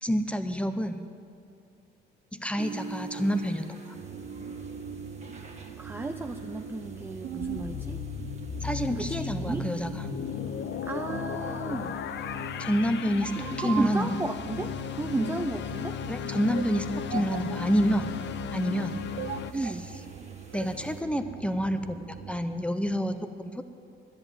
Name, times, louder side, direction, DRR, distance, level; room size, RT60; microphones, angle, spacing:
voice 1, 0.0-1.0 2.3-3.8 8.6-10.1 12.6-13.3 13.6-14.1 16.1-18.1 18.5-19.0 19.5-19.7 20.5-23.6, equal, 5° left, 9 dB, 0.9 m, -28 dB
sound 1, 2.6-21.0, right 4 dB, 35° right, 1.8 m, -47 dB
sound 2, 3.9-22.4, right 8 dB, 80° right, 0.8 m, -42 dB
voice 2, 5.8-8.0 8.9-9.7 10.8-12.0 13.4-16.0 17.1-17.2 19.5-19.9, right 2 dB, 10° right, 6 dB, 0.5 m, -34 dB
sound 3, 7.4-19.5, left 9 dB, 65° left, 0.6 m, -36 dB
11.5 x 10.5 x 9.0 m, 2.4 s
cardioid pair, 90°, 20 cm